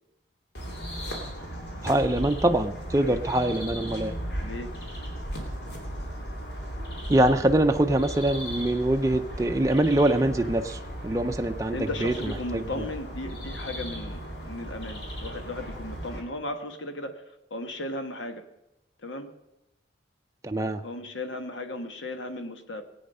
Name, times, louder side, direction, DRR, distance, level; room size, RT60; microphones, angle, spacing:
sound 1, 0.5-16.2, equal, 65° left, 2.9 m, -36 dB
voice 1, 1.8-4.2 7.1-12.9 20.4-20.8, right 1 dB, 15° right, 5 dB, 0.5 m, -24 dB
voice 2, 4.4-4.7 11.7-17.2 17.5-18.4 19.0-19.3 20.8-22.8, left 1 dB, 90° left, 7 dB, 1.4 m, -36 dB
19.0 x 8.6 x 5.5 m, 0.93 s
head